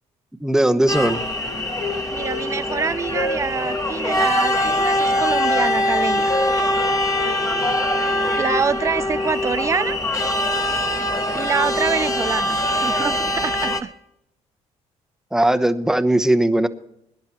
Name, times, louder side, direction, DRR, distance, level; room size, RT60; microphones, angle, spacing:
voice 1, 0.4-1.2 15.3-16.7, right 1 dB, 5° right, 1.0 m, -18 dB
sound 1, 0.9-13.8, left 1 dB, 25° left, 1.7 m, -22 dB
Wind instrument woodwind instrument, 1.3-4.7 5.0-8.3, left 2 dB, 85° left, 3.0 m, -31 dB
voice 2, 2.1-6.3 8.0-10.0 11.3-13.9, right 6 dB, 25° right, 0.4 m, -26 dB
23.5 x 10.5 x 3.0 m
cardioid pair, 85°, 13 cm